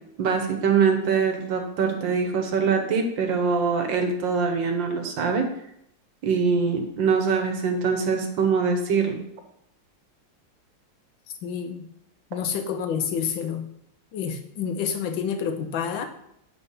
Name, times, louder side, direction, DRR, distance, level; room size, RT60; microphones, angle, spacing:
voice 1, 0.2-5.5 6.2-9.2, right 5 dB, 75° right, 5 dB, 1.8 m, -23 dB
voice 2, 11.4-11.9 12.3-13.6 14.1-16.1, left 7 dB, 85° left, 6 dB, 1.6 m, -28 dB
8.1 x 4.5 x 5.5 m, 0.75 s
omnidirectional pair, 2.1 m